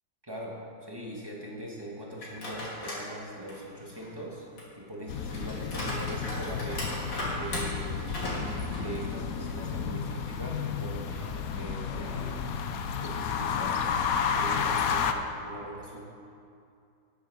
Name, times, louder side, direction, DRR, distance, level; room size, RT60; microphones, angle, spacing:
voice 1, 0.2-4.5 4.8-7.0 7.3-8.1 8.7-12.4 13.0-16.1, right 1 dB, 15° right, -4 dB, 1.6 m, -41 dB
sound 1, 2.2-3.1 3.5-9.6 10.0-10.1 11.0-12.5, left 1 dB, 90° left, 3.1 m, -38 dB
sound 2, 5.1-15.1, left 6 dB, 65° left, 0.9 m, -32 dB
9.7 x 8.7 x 6.3 m, 2.5 s
omnidirectional pair, 2.0 m